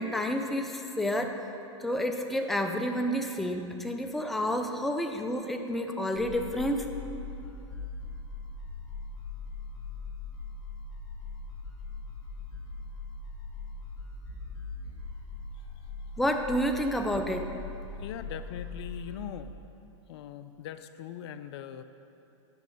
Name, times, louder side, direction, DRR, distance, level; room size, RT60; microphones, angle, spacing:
voice 1, 0.0-1.4 1.8-6.9 16.2-17.5, equal, ahead, 4 dB, 0.4 m, -29 dB
sound 1, 6.1-19.3, left 3 dB, 25° left, 2.2 m, -41 dB
voice 2, 18.0-19.5 20.1-21.8, left 9 dB, 55° left, 11 dB, 0.4 m, -41 dB
9.4 x 6.1 x 5.3 m, 2.8 s
hypercardioid pair, 125°, 16 cm